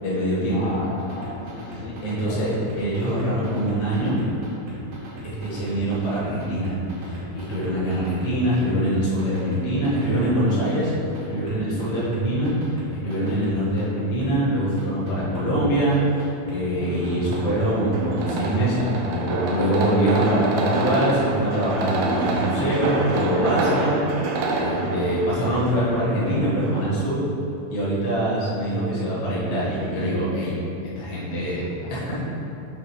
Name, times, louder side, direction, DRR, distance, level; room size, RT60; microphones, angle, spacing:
voice 1, 0.0-0.6 2.0-2.5 2.8-4.1 5.2-10.9 11.3-12.5 12.9-27.2 27.7-30.5 31.0-32.2, right 1 dB, 40° left, -7 dB, 1.5 m, -24 dB
voice 2, 0.5-2.0 2.2-2.5 31.4-32.2, left 2 dB, 85° left, -5 dB, 1.5 m, -36 dB
sound 1, 1.0-8.6 8.9-11.2 11.5-13.8 14.2-14.3 14.8-15.5 15.9-16.6 17.0-17.7 18.2-18.3 18.7-18.8 19.3-19.4, right 2 dB, 65° right, 1.5 m, -39 dB
sound 2, 16.8-26.9, right 3 dB, 85° right, 2.7 m, -27 dB
9.1 x 3.7 x 4.5 m, 2.8 s
omnidirectional pair, 4.2 m